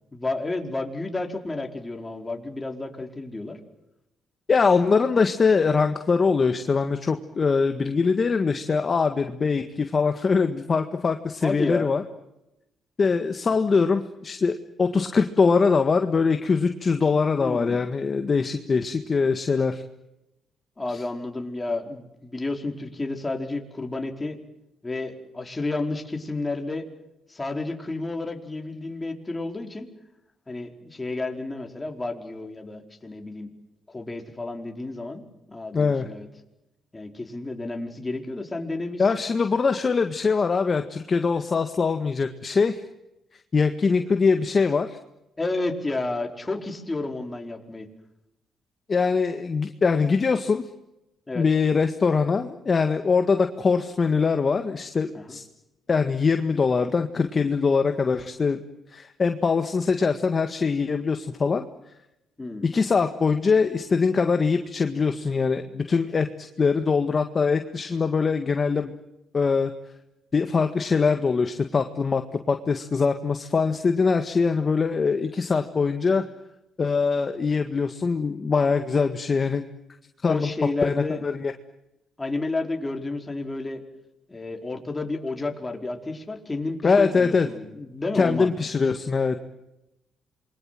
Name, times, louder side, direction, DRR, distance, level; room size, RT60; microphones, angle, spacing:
voice 1, 0.1-3.6 11.4-11.9 17.4-17.8 20.8-24.4 24.8-26.9 27.3-29.9 30.5-33.5 33.9-36.3 36.9-39.2 45.4-47.9 51.3-51.5 55.1-55.4 62.4-62.7 80.3-81.3 82.2-83.8 84.3-88.5, left 2 dB, 20° left, 3 dB, 4.8 m, -31 dB
voice 2, 4.5-12.0 13.0-19.8 35.7-36.1 39.0-42.8 43.5-45.0 48.9-50.6 51.4-55.4 55.9-58.6 58.9-61.7 62.6-68.9 69.3-69.7 70.3-72.2 72.5-76.2 76.8-79.6 80.2-80.5 80.8-81.5 86.8-87.5 88.1-89.4, left 5 dB, 35° left, 7 dB, 1.8 m, -22 dB
27.5 x 23.5 x 7.8 m, 0.91 s
cardioid pair, 90°, 0 cm